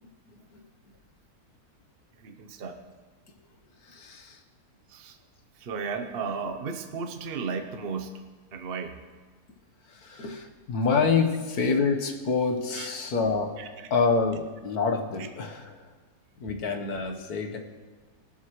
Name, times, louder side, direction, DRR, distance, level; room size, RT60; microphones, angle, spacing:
voice 1, 2.2-2.8 4.9-5.2 5.5-8.2 8.5-9.0 12.7-13.0 13.6-13.9 15.2-15.3, right 5 dB, 45° right, 6 dB, 0.8 m, -35 dB
voice 2, 3.8-4.4 9.9-13.5 13.9-15.9 16.4-17.6, left 4 dB, 70° left, 4 dB, 1.7 m, -27 dB
19.5 x 12.0 x 3.1 m, 1.4 s
omnidirectional pair, 1.7 m